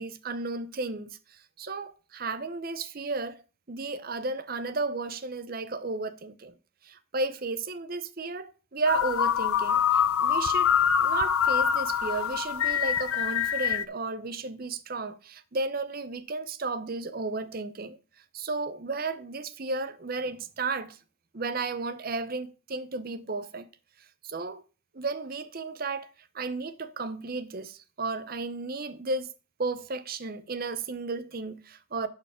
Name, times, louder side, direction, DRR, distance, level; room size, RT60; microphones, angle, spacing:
voice 1, 0.0-3.4 3.7-6.5 6.8-10.7 11.0-18.0 18.3-21.0 21.3-23.7 24.2-24.6 24.9-29.3 29.6-32.1, right 3 dB, 45° right, 0.7 m, -33 dB
sound 1, 8.9-13.9, left 8 dB, 90° left, 0.5 m, -25 dB
11.0 x 4.7 x 4.9 m
head